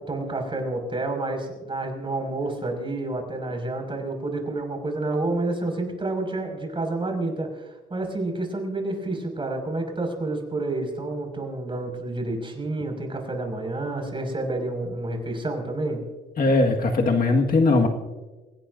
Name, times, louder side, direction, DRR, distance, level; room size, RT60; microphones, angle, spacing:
voice 1, 0.0-16.0, right 2 dB, 25° right, 2 dB, 5.8 m, -29 dB
voice 2, 16.4-17.9, left 3 dB, 45° left, 2 dB, 1.8 m, -19 dB
28.5 x 17.0 x 2.7 m, 1.3 s
cardioid pair, 90°, 20 cm